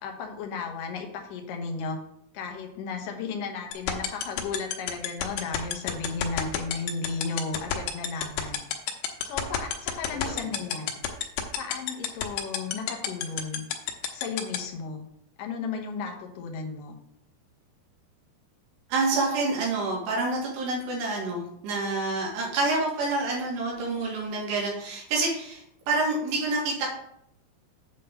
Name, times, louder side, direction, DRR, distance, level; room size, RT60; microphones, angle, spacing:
voice 1, 0.0-2.0 2.3-8.6 9.2-10.9 11.6-13.6 14.1-15.1 15.4-17.0, left 4 dB, 65° left, 2 dB, 2.4 m, -34 dB
sound 1, 3.7-14.6, left 12 dB, 90° left, 3.0 m, -27 dB
voice 2, 18.9-26.9, right 3 dB, 80° right, -3 dB, 3.8 m, -28 dB
8.3 x 3.8 x 6.7 m, 0.72 s
omnidirectional pair, 4.9 m